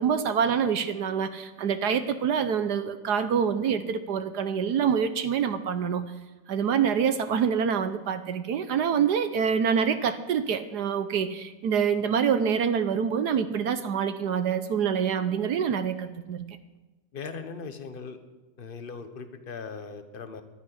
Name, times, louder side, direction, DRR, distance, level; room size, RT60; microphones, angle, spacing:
voice 1, 0.0-6.0 6.5-16.5, right 7 dB, 70° right, 11 dB, 1.4 m, -26 dB
voice 2, 17.1-18.2 18.6-20.4, left 5 dB, 35° left, 9 dB, 1.2 m, -39 dB
11.5 x 11.0 x 9.9 m, 1.1 s
omnidirectional pair, 1.9 m